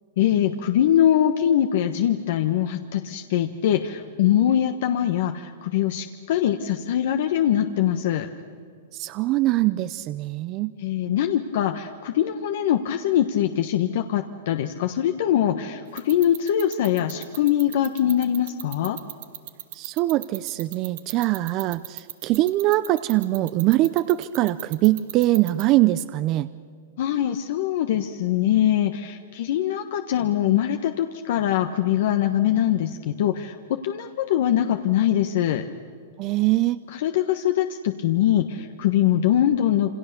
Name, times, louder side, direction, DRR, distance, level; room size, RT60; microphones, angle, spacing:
voice 1, 0.2-8.3 10.8-19.0 27.0-33.6 33.8-35.6 36.9-39.9, left 11 dB, 60° left, 6 dB, 1.2 m, -22 dB
voice 2, 8.9-10.7 19.7-26.5 36.2-36.8, right 16 dB, 35° right, 15 dB, 0.5 m, -22 dB
sound 1, 16.0-25.6, right 14 dB, 60° right, 1.2 m, -35 dB
27.5 x 26.0 x 6.8 m, 2.2 s
hypercardioid pair, 145°, 0 cm